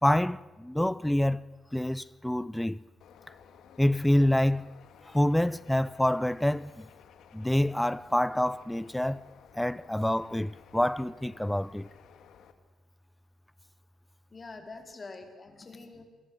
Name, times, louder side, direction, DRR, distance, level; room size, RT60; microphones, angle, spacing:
voice 1, 0.0-1.4 1.7-2.8 3.8-4.7 5.1-6.9 7.3-9.2 9.5-11.9, left 1 dB, 5° left, 0.7 m, -27 dB
Bird, 3.0-12.5, left 8 dB, 75° left, 2.2 m, -56 dB
voice 2, 14.3-16.0, left 3 dB, 30° left, 4.4 m, -45 dB
27.5 x 21.5 x 8.0 m
cardioid pair, 90°, 0 cm